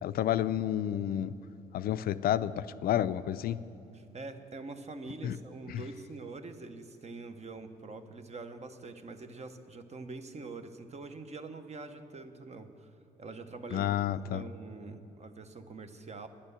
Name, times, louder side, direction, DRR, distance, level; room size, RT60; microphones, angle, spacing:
voice 1, 0.0-1.3 1.7-3.6 5.2-5.4 5.7-5.8 13.7-14.4, left 11 dB, 60° left, 14 dB, 0.4 m, -30 dB
voice 2, 3.9-12.9 13.2-13.9 14.3-16.3, right 3 dB, 40° right, 8 dB, 1.0 m, -44 dB
9.9 x 8.8 x 6.8 m, 3.0 s
supercardioid pair, 60°, 17 cm